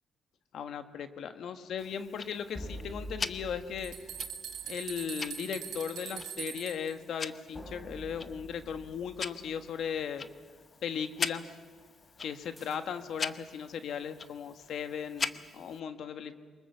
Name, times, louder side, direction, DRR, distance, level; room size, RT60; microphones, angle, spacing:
voice 1, 0.5-3.9 4.7-10.3 10.8-11.5 12.2-16.3, left 7 dB, 70° left, 8 dB, 1.5 m, -37 dB
Tick-tock, 1.8-15.8, left 5 dB, 40° left, 0.9 m, -42 dB
sound 1, 2.5-5.3 7.5-10.2 12.6-13.2, equal, 20° left, 5.3 m, -47 dB
sound 2, 3.4-3.5 3.8-6.9, right 9 dB, 75° right, 2.9 m, -41 dB
24.0 x 21.0 x 7.2 m, 1.6 s
cardioid pair, 90°, 0 cm